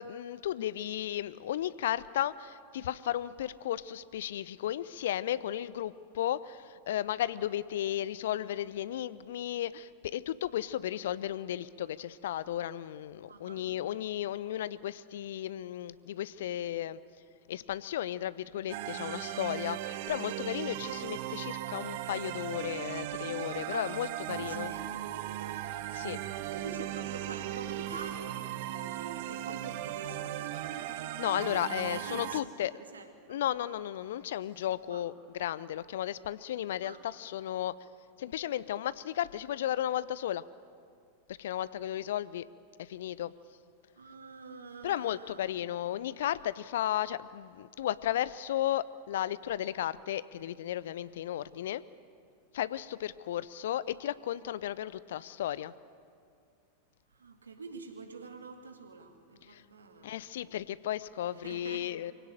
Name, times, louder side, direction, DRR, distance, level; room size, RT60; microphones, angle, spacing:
voice 1, 0.0-17.0 17.5-24.7 25.9-26.2 31.2-32.7 33.3-37.7 38.2-40.4 41.3-42.5 42.8-43.3 44.8-51.8 52.5-55.7 59.5-59.6 60.0-62.1, left 12 dB, 60° left, 18 dB, 0.6 m, -34 dB
voice 2, 13.3-13.7 23.6-24.1 24.3-25.6 26.5-30.9 31.8-32.5 32.9-33.4 34.9-35.0 36.8-37.0 44.0-45.4 57.1-60.2 61.4-61.8, right 4 dB, 75° right, 5 dB, 2.2 m, -46 dB
sound 1, 18.7-32.4, right 13 dB, 50° right, 0.9 m, -37 dB
24.0 x 17.0 x 9.0 m, 2.3 s
figure-of-eight pair, 90°, 0 cm